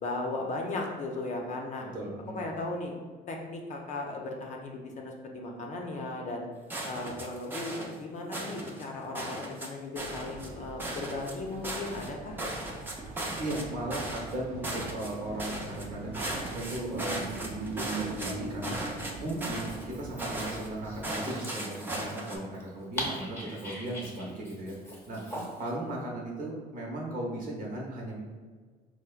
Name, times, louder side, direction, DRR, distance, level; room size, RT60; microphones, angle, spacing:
voice 1, 0.0-1.9 2.3-2.9 3.3-6.5 6.8-12.4, left 2 dB, 45° left, 1 dB, 0.6 m, -36 dB
voice 2, 1.8-2.4 13.1-18.9 19.2-25.2 25.6-28.2, right 1 dB, 55° right, -2 dB, 0.9 m, -37 dB
sound 1, 6.7-7.9 8.3-8.8 9.1-9.7 9.9-10.5 10.8-12.1 12.4-13.6 13.9-14.3 14.6-15.1 15.4-15.8 16.1-18.3 18.6-19.8 20.2-20.7 21.0-22.4, right 1 dB, 10° right, 0.5 m, -37 dB
sound 2, 10.0-21.2, right 3 dB, 80° right, 0.5 m, -42 dB
Dog, 19.5-25.7, equal, 15° left, 0.8 m, -42 dB
4.4 x 2.1 x 2.4 m, 1.5 s
cardioid pair, 110°, 17 cm